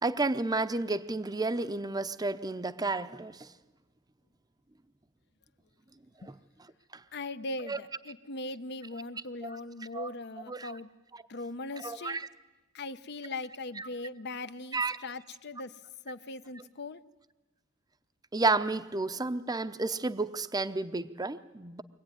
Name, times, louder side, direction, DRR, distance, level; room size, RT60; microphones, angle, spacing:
voice 1, 0.0-3.5 6.2-6.3 6.9-7.0 7.7-7.8 9.4-9.5 9.9-10.1 10.5-10.8 11.8-12.3 13.8-13.9 14.7-15.0 18.3-21.8, right 3 dB, 20° right, 11 dB, 0.7 m, -31 dB
voice 2, 7.1-10.9 11.3-12.2 12.7-15.7 16.0-17.0, left 2 dB, 55° left, 12 dB, 0.8 m, -40 dB
25.0 x 17.0 x 9.8 m, 1.2 s
head